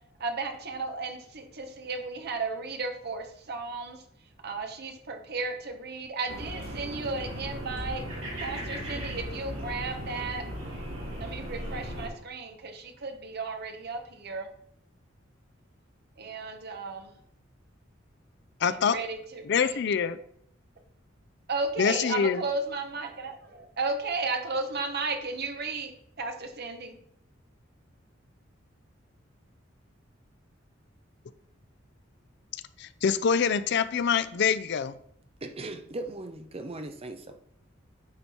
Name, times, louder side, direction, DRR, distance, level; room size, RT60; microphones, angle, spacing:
voice 1, 0.2-4.0 4.4-8.0 8.4-10.4 11.1-14.5 16.2-17.1 18.7-19.8 21.5-25.9 26.2-26.9, right 3 dB, 55° right, 6 dB, 1.1 m, -34 dB
sound 1, 6.3-12.1, equal, 75° right, 3.1 m, -37 dB
voice 2, 18.6-19.0 19.4-20.2 21.8-22.4 32.8-35.0, left 6 dB, 60° left, 15 dB, 0.5 m, -25 dB
voice 3, 35.4-37.4, right 2 dB, 30° right, 7 dB, 0.8 m, -38 dB
8.8 x 4.4 x 4.3 m, 0.68 s
head